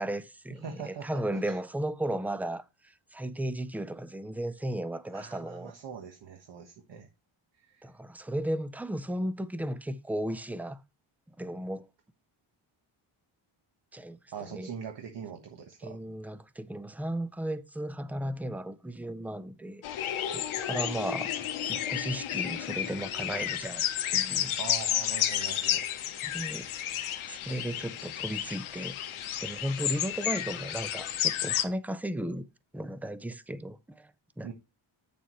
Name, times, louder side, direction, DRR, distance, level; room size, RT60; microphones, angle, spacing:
voice 1, 0.0-5.7 7.8-10.8 11.3-11.9 13.9-14.7 15.8-21.3 21.6-23.8 24.1-24.6 26.2-26.7 27.3-29.0 29.4-32.5 32.7-34.1 34.4-34.5, right 1 dB, 5° right, 0.4 m, -35 dB
voice 2, 0.6-1.6 5.1-7.1 7.5-7.9 14.3-16.0 24.6-25.9 34.4-34.5, right 7 dB, 60° right, 1.3 m, -42 dB
sound 1, 19.8-31.6, left 11 dB, 90° left, 1.0 m, -32 dB
8.6 x 6.9 x 3.1 m
wide cardioid pair, 125°, 48 cm